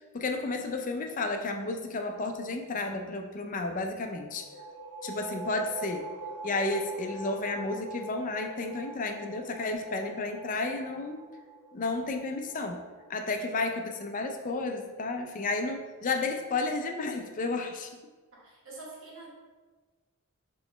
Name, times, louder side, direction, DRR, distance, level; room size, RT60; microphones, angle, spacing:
voice 1, 0.0-4.4 5.0-6.1 6.4-11.2 11.7-12.8 13.1-17.9, left 3 dB, 35° left, 4 dB, 0.4 m, -32 dB
sound 1, 4.2-13.6, right 2 dB, 75° right, 0.8 m, -44 dB
voice 2, 18.3-19.3, right 2 dB, 60° right, -4 dB, 1.2 m, -46 dB
5.0 x 3.1 x 3.2 m, 1.3 s
head